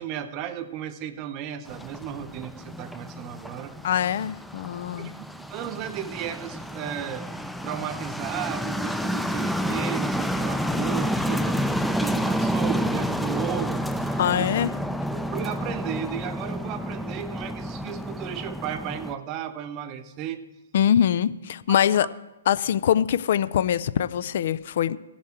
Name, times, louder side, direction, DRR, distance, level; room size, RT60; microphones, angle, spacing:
voice 1, 0.0-3.7 4.9-7.3 7.6-11.6 11.9-14.5 15.1-20.4 21.7-22.1, right 10 dB, 30° right, 11 dB, 0.8 m, -34 dB
sound 1, 1.7-19.1, equal, ahead, 0.5 m, -29 dB
voice 2, 3.8-5.1 14.2-14.7 20.7-22.1 22.5-25.0, left 9 dB, 55° left, 16 dB, 0.4 m, -23 dB
16.0 x 7.1 x 4.5 m, 1.0 s
hypercardioid pair, 130°, 0 cm